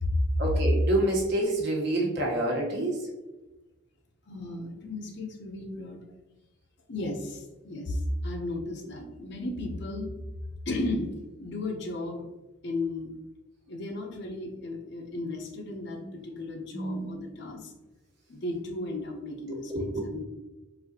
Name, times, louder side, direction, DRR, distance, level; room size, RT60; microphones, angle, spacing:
voice 1, 0.4-3.1 16.0-16.1 16.7-17.3 19.5-20.2, right 1 dB, 55° right, -2 dB, 1.1 m, -28 dB
voice 2, 4.3-6.0 6.9-10.1 10.7-11.1 11.4-12.3 12.6-13.1 13.7-17.7 18.3-20.2, left 2 dB, 55° left, 2 dB, 0.7 m, -34 dB
4.0 x 3.8 x 2.8 m, 1.1 s
head